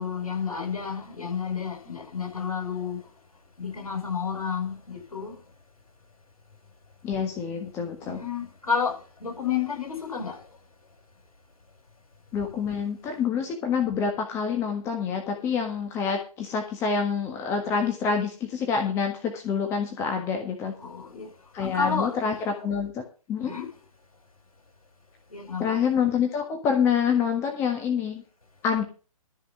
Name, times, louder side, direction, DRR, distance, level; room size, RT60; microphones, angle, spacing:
voice 1, 0.0-3.0 3.6-5.3 8.0-10.4 20.8-21.3 21.6-22.2 23.5-23.7 25.3-25.8, left 6 dB, 65° left, 6.8 m, -30 dB
voice 2, 7.0-8.2 12.3-20.7 21.5-23.5 25.6-28.2 28.6-28.8, left 6 dB, 15° left, 1.5 m, -27 dB
13.5 x 5.5 x 7.5 m
figure-of-eight pair, 135°, 19 cm